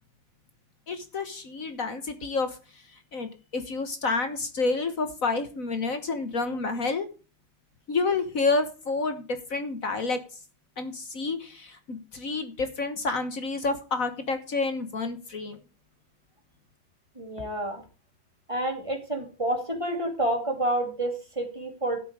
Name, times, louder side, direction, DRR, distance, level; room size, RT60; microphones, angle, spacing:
voice 1, 0.9-7.1 7.9-10.2 10.8-15.6, left 3 dB, 45° left, 9 dB, 1.5 m, -29 dB
voice 2, 17.2-17.8 18.5-22.0, right 1 dB, 15° right, 3 dB, 2.9 m, -29 dB
12.0 x 7.7 x 4.9 m, 0.35 s
omnidirectional pair, 2.2 m